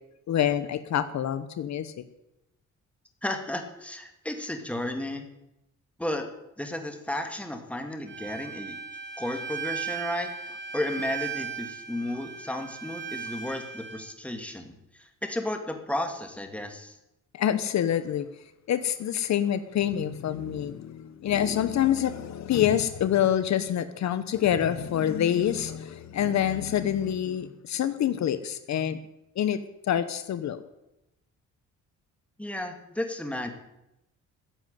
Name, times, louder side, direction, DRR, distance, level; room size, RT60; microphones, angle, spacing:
voice 1, 0.3-1.9 17.3-18.3 18.7-29.0 29.4-29.6 29.9-30.6, left 10 dB, 65° left, 12 dB, 1.0 m, -26 dB
voice 2, 3.2-5.2 6.0-6.2 6.6-8.8 9.2-17.0 32.4-33.5, left 1 dB, 5° left, 5 dB, 2.5 m, -33 dB
Bowed string instrument, 8.1-14.0, right 6 dB, 40° right, 2.6 m, -37 dB
15.0 x 7.8 x 9.1 m, 0.89 s
cardioid pair, 90°, 30 cm